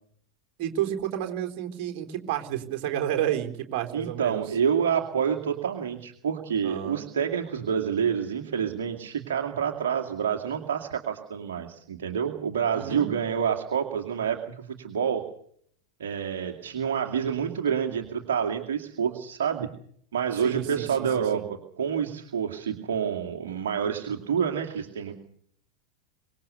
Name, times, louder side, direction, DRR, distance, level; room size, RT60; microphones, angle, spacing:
voice 1, 0.6-4.4 6.6-7.0 12.7-13.1 20.4-20.9 21.3-21.4, right 11 dB, 45° right, 3 dB, 3.9 m, -30 dB
voice 2, 3.9-15.2 16.0-19.7 20.1-25.2, right 7 dB, 60° right, 3 dB, 2.4 m, -28 dB
25.0 x 20.5 x 6.9 m, 0.62 s
figure-of-eight pair, 90°, 0 cm